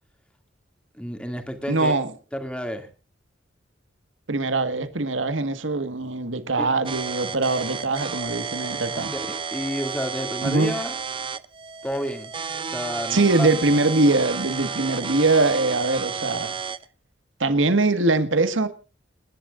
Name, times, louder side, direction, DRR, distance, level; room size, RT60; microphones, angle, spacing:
voice 1, 1.0-2.0 2.3-2.9 6.6-6.7 9.3-11.0 11.8-12.3 12.7-13.5, equal, 5° left, 2.5 m, -30 dB
voice 2, 1.7-2.1 4.3-9.1 10.4-10.7 13.1-16.5 17.4-18.7, right 2 dB, 90° right, 1.7 m, -22 dB
sound 1, 6.9-16.9, right 6 dB, 25° right, 0.6 m, -32 dB
28.5 x 11.5 x 2.5 m
head